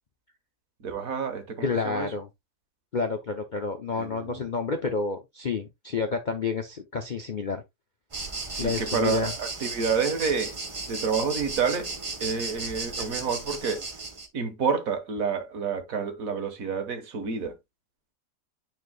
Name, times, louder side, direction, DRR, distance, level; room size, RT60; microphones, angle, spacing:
voice 1, 0.8-2.1 3.9-4.5 8.5-10.6 10.9-11.9 12.2-13.8 14.3-17.5, right 5 dB, 60° right, 1.6 m, -29 dB
voice 2, 1.6-2.3 2.9-7.6 8.6-9.3, left 4 dB, 50° left, 0.6 m, -29 dB
sound 1, 8.1-14.3, right 3 dB, 25° right, 0.9 m, -35 dB
9.2 x 4.6 x 2.2 m
omnidirectional pair, 1.7 m